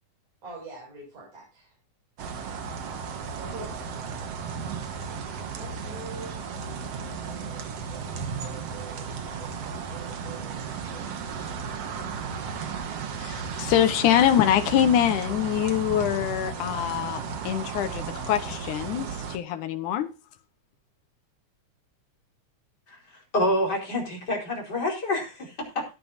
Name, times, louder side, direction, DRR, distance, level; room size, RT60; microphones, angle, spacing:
voice 1, 0.4-1.7 3.4-3.9 5.5-6.3, right 2 dB, 80° right, 8.5 m, -42 dB
sound 1, 2.2-19.4, right 6 dB, 60° right, 2.4 m, -34 dB
voice 2, 13.2-20.1, left 10 dB, 85° left, 2.6 m, -24 dB
voice 3, 23.3-25.9, left 1 dB, 30° left, 5.2 m, -27 dB
17.0 x 10.0 x 2.8 m
omnidirectional pair, 3.4 m